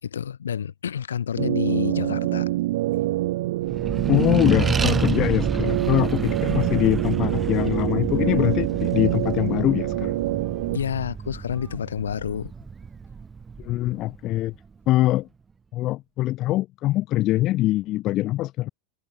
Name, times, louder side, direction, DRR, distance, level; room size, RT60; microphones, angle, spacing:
voice 1, 0.0-2.5 10.7-12.5, left 8 dB, 80° left, 3.3 m, -29 dB
sound 1, 1.4-10.8, right 17 dB, 65° right, 1.3 m, -26 dB
Accelerating revving vroom, 3.6-14.6, right 5 dB, 20° right, 0.7 m, -29 dB
voice 2, 4.1-10.2 13.6-14.5 14.9-15.3 15.7-18.7, left 16 dB, 45° left, 0.6 m, -23 dB
hypercardioid pair, 90°, 0 cm